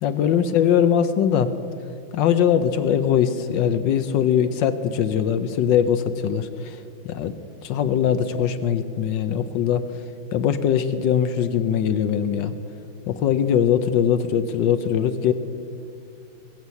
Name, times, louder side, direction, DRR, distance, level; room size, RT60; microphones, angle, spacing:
voice 1, 0.0-1.5 2.1-7.3 7.6-10.0 10.3-12.5 13.1-15.3, left 8 dB, 70° left, 11 dB, 1.2 m, -21 dB
20.5 x 8.0 x 7.1 m, 2.5 s
omnidirectional pair, 2.4 m